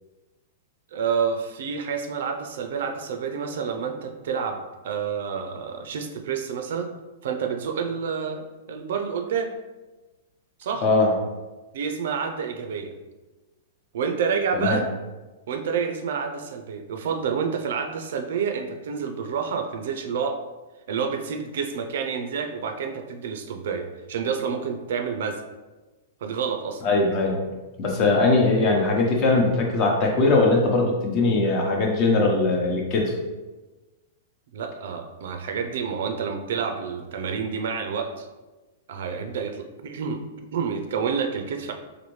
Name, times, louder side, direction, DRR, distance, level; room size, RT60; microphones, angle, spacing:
voice 1, 0.9-6.9 7.2-9.5 10.6-10.8 11.7-12.9 13.9-14.9 15.5-20.4 20.9-25.4 26.2-26.8 34.5-38.3 38.9-40.2 40.5-41.7, right 6 dB, 70° right, 5 dB, 0.5 m, -28 dB
voice 2, 26.8-27.4 27.8-33.1, left 3 dB, 35° left, 0 dB, 0.8 m, -20 dB
4.1 x 2.6 x 3.1 m, 1.2 s
hypercardioid pair, 150°, 0 cm